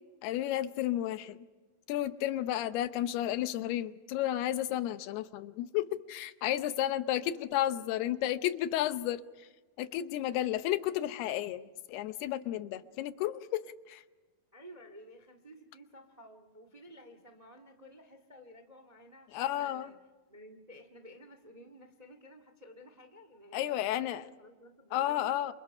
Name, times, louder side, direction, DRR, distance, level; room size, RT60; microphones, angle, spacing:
voice 1, 0.2-1.5 1.9-9.5 9.8-11.6 11.9-14.0 19.3-19.9 23.5-24.2 24.9-25.5, left 13 dB, 85° left, 12 dB, 2.9 m, -32 dB
voice 2, 7.1-7.4 10.3-10.4 14.5-19.9 20.3-25.4, equal, 25° right, 7 dB, 0.8 m, -54 dB
29.0 x 28.0 x 5.6 m, 1.2 s
omnidirectional pair, 4.5 m